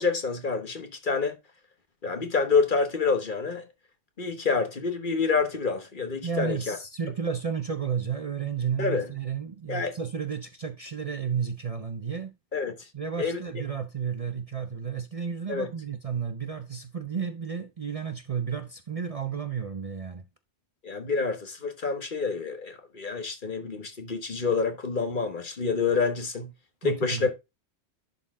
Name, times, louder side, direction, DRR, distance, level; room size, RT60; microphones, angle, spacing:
voice 1, 0.0-1.4 2.0-3.6 4.2-6.8 8.8-9.1 9.7-10.0 12.5-12.8 13.2-13.4 15.5-15.7 20.8-26.5 26.8-27.3, left 4 dB, 50° left, 1.4 m, -27 dB
voice 2, 6.2-12.3 12.9-20.2 26.8-27.3, right 6 dB, 40° right, 0.6 m, -32 dB
11.0 x 4.2 x 3.6 m
omnidirectional pair, 1.1 m